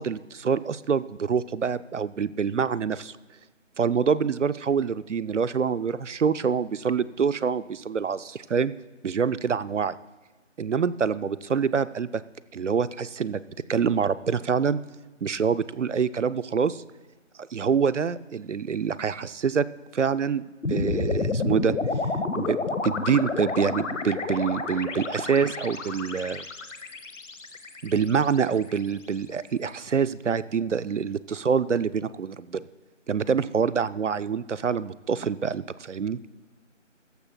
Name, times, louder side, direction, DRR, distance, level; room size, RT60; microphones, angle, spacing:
voice 1, 0.0-3.1 3.8-8.7 9.0-9.9 10.6-12.2 12.5-13.4 13.7-14.8 15.2-16.8 17.4-19.7 19.9-20.4 20.7-21.7 22.4-26.4 27.8-32.6 33.1-36.2, right 6 dB, 65° right, 16 dB, 0.5 m, -26 dB
sound 1, 20.6-28.9, left 3 dB, 75° left, 1.1 m, -30 dB
15.5 x 14.0 x 2.3 m, 1.2 s
figure-of-eight pair, 180°, 39 cm